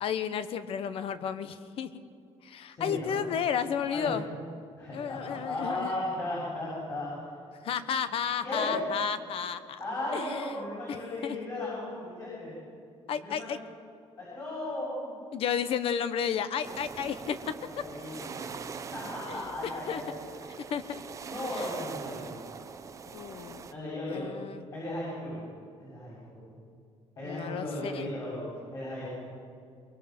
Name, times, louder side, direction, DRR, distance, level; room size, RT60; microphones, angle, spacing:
voice 1, 0.0-1.9 2.4-4.3 4.9-5.9 7.6-9.8 10.1-10.5 10.9-11.0 11.2-11.4 13.1-13.6 15.3-17.4 19.3-20.0 20.7-21.0 21.5-21.7 23.1-23.7 24.1-24.7 27.2-28.1, left 8 dB, 55° left, 12 dB, 1.0 m, -32 dB
voice 2, 2.7-3.2 3.9-4.1 4.8-7.1 8.4-8.8 9.8-12.5 13.1-13.5 14.2-15.2 17.6-20.1 21.3-22.3 23.7-24.3 24.7-25.4 25.8-26.6 27.2-28.4 28.7-29.2, left 1 dB, 30° left, -6 dB, 7.1 m, -36 dB
sound 1, 16.6-23.7, right 5 dB, 30° right, 0.8 m, -42 dB
23.5 x 21.5 x 6.0 m, 2.3 s
cardioid pair, 170°, 11 cm